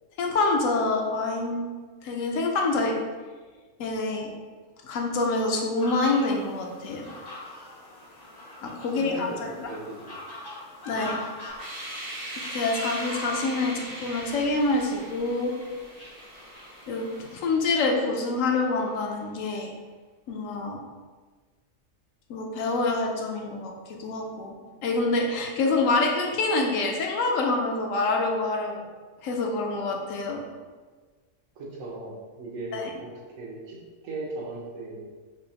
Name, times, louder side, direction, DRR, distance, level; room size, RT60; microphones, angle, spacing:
voice 1, 0.2-1.7 2.0-3.0 3.8-4.3 4.8-7.1 8.6-9.3 9.6-9.7 10.9-11.2 12.5-15.5 16.9-17.1 17.3-19.7 20.3-20.8 22.3-24.5 24.8-28.8 29.2-30.4 32.7-32.9, left 3 dB, 80° left, 1 dB, 1.0 m, -26 dB
sound 1, 5.8-17.3, left 1 dB, 30° left, 0.4 m, -43 dB
voice 2, 8.9-10.1 10.9-11.1 31.6-35.0, right 2 dB, 85° right, -2 dB, 1.2 m, -38 dB
sound 2, 11.5-18.4, right 1 dB, 60° right, 0.3 m, -40 dB
5.1 x 2.0 x 2.8 m, 1.4 s
omnidirectional pair, 1.4 m